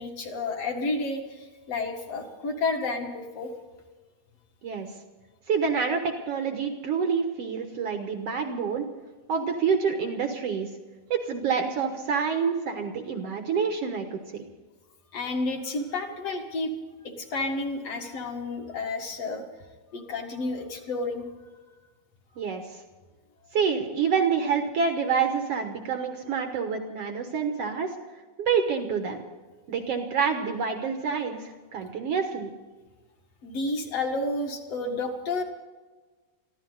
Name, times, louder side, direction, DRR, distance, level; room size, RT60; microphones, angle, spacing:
voice 1, 0.0-3.5 15.1-16.7 17.0-19.4 19.9-21.3 33.4-35.4, left 3 dB, 50° left, 3 dB, 2.2 m, -31 dB
voice 2, 5.5-8.8 9.3-10.7 11.1-14.5 22.4-22.8 23.5-27.9 28.4-29.2 29.7-32.5, right 6 dB, 70° right, 5 dB, 1.4 m, -27 dB
23.5 x 15.0 x 4.0 m, 1.3 s
omnidirectional pair, 4.5 m